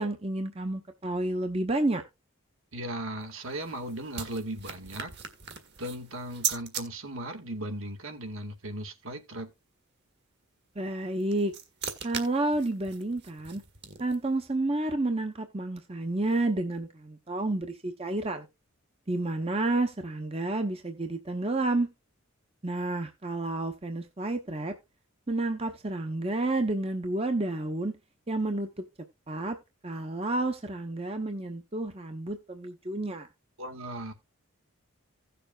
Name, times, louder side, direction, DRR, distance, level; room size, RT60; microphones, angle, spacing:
voice 1, 0.0-2.0 10.8-11.5 12.0-13.6 14.0-18.5 19.1-21.9 22.6-24.7 25.3-27.9 28.3-28.8 29.3-29.6 29.8-33.3, right 2 dB, 25° right, 0.9 m, -30 dB
voice 2, 2.7-5.1 5.8-9.5 33.6-34.1, right 1 dB, 65° right, 2.0 m, -37 dB
sound 1, 3.2-6.8 11.0-14.3, right 8 dB, 50° right, 1.7 m, -39 dB
16.5 x 6.8 x 2.4 m
head